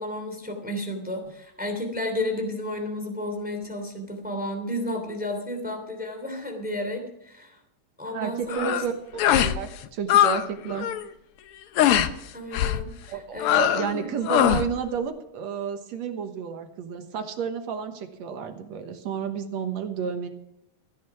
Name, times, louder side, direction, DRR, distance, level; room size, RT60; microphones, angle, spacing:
voice 1, 0.0-7.6 8.0-8.8 12.3-14.1, left 1 dB, 5° right, 4 dB, 2.5 m, -32 dB
voice 2, 8.1-8.9 9.3-10.9 13.1-20.3, right 7 dB, 70° right, 6 dB, 2.4 m, -31 dB
sound 1, 8.5-8.9 9.2-9.6 9.8-10.4 10.7-11.0 11.8-12.1 12.5-12.8 13.4-13.9 14.2-14.7, left 11 dB, 75° left, 1.3 m, -21 dB
15.5 x 10.0 x 5.9 m, 0.80 s
omnidirectional pair, 3.3 m